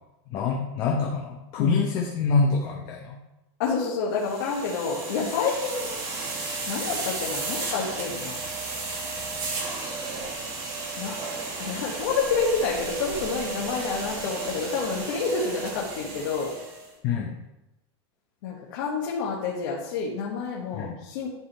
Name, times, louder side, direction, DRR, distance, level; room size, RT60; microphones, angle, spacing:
voice 1, 0.3-3.2 17.0-17.4 20.7-21.0, left 4 dB, 25° left, -1 dB, 0.7 m, -25 dB
voice 2, 3.6-6.0 6.7-8.4 11.0-11.2 11.6-16.5 18.4-21.3, left 5 dB, 50° left, -4 dB, 1.3 m, -28 dB
sound 1, 4.2-16.9, right 3 dB, 25° right, 1.1 m, -34 dB
10.5 x 3.6 x 4.2 m, 0.96 s
supercardioid pair, 175°, 14 cm